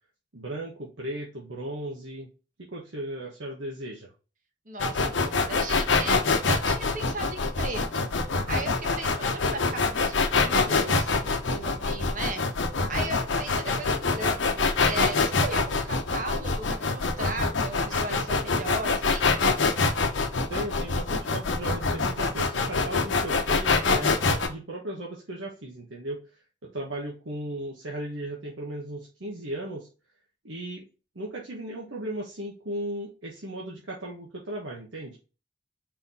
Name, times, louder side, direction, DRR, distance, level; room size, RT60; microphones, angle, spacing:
voice 1, 0.3-2.3 2.7-4.1 20.5-26.2 26.7-29.9 30.4-30.8 31.1-35.2, right 1 dB, 90° right, -3 dB, 1.2 m, -36 dB
voice 2, 4.7-8.1 8.5-12.4 12.9-19.4, right 2 dB, 45° right, 4 dB, 1.1 m, -37 dB
sound 1, 4.8-24.5, left 4 dB, 85° left, 0.8 m, -25 dB
4.6 x 3.9 x 2.7 m, 0.33 s
head